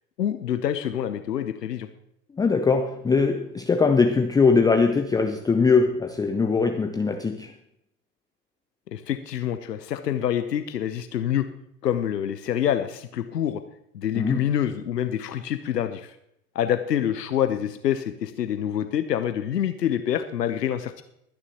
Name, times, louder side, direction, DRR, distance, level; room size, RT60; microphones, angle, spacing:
voice 1, 0.2-1.9 8.9-11.5 11.8-13.6 13.9-16.2 16.5-21.0, left 10 dB, 80° left, 0.9 m, -26 dB
voice 2, 2.4-7.5 14.1-14.4, left 4 dB, 10° left, 0.5 m, -21 dB
23.0 x 9.7 x 2.9 m
figure-of-eight pair, 80°, 48 cm